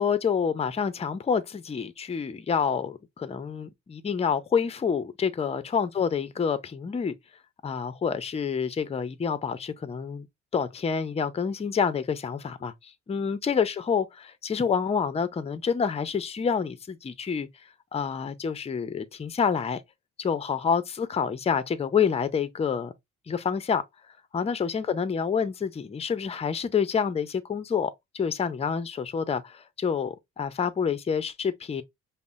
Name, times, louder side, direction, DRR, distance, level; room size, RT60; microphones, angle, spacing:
voice 1, 0.0-7.1 7.6-10.3 10.5-17.5 17.9-19.8 20.2-22.9 23.3-23.8 24.3-31.8, left 6 dB, 20° left, 0.5 m, -28 dB
5.3 x 2.0 x 2.4 m
cardioid pair, 90°, 30 cm